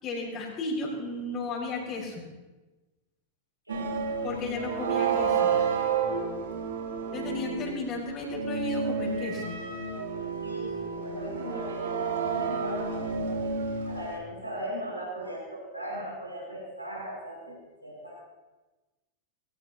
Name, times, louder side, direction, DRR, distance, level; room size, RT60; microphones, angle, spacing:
voice 1, 0.0-2.2 4.2-5.5 7.1-9.5, left 2 dB, 35° left, -3 dB, 5.5 m, -34 dB
sound 1, 3.7-7.8 8.2-14.2, right 5 dB, 60° right, 2.3 m, -30 dB
voice 2, 3.7-4.0 10.4-13.6 13.8-18.2, equal, 85° right, -4 dB, 6.5 m, -39 dB
21.0 x 18.0 x 3.1 m, 1.2 s
figure-of-eight pair, 90°, 0 cm